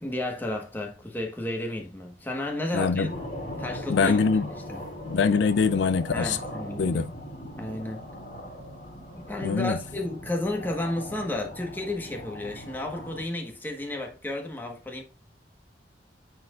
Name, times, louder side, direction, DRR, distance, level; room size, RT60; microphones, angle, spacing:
voice 1, 0.0-3.1 3.6-4.2 4.7-4.8 6.1-7.1 7.6-8.1 9.2-15.0, left 1 dB, 10° left, 1.2 m, -32 dB
voice 2, 2.7-3.1 3.9-4.5 5.1-6.4 6.8-7.1 9.4-9.8, left 5 dB, 70° left, 0.4 m, -23 dB
sound 1, 2.9-13.2, equal, 50° left, 2.6 m, -39 dB
9.3 x 4.4 x 2.4 m
head